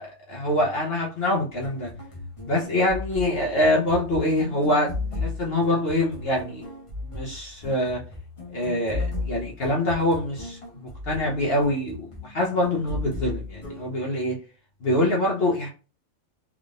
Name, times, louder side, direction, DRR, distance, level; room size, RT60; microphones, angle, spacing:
voice 1, 0.0-1.9 2.4-4.9 5.2-6.6 7.1-8.0 8.5-14.4 14.8-15.7, left 1 dB, 50° left, -2 dB, 1.0 m, -25 dB
sound 1, 1.5-13.9, left 3 dB, 25° left, 1.0 m, -35 dB
3.6 x 3.5 x 2.4 m, 0.35 s
omnidirectional pair, 1.4 m